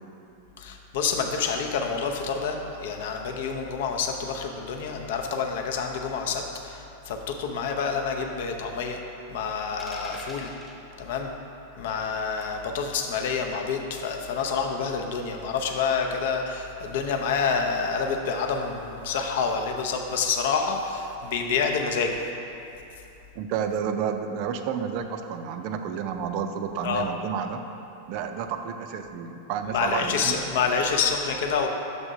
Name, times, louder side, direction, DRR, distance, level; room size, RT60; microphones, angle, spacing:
voice 1, 0.6-9.0 9.3-10.5 11.0-11.3 11.8-22.2 26.8-27.1 29.7-31.7, left 5 dB, 55° left, 3 dB, 0.6 m, -28 dB
sound 1, 9.8-10.8 12.4-12.6 14.4-14.7, left 1 dB, 10° left, 1.2 m, -43 dB
voice 2, 23.4-27.7 28.1-30.3, right 7 dB, 45° right, 7 dB, 0.4 m, -30 dB
6.7 x 3.6 x 5.0 m, 2.9 s
figure-of-eight pair, 90°, 0 cm